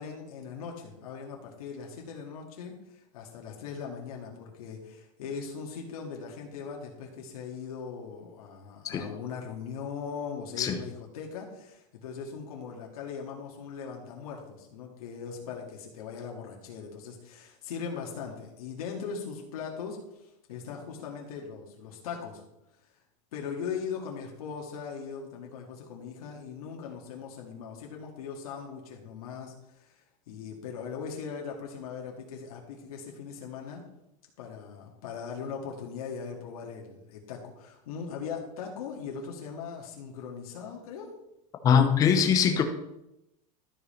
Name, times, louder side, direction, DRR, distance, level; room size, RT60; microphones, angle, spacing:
voice 1, 0.0-22.4 23.3-29.5 29.8-30.0 30.3-33.8 34.4-41.1, left 6 dB, 90° left, 0 dB, 2.0 m, -39 dB
voice 2, 41.6-42.6, left 7 dB, 20° left, 6 dB, 0.8 m, -22 dB
12.5 x 5.4 x 4.4 m, 0.87 s
supercardioid pair, 175°, 18 cm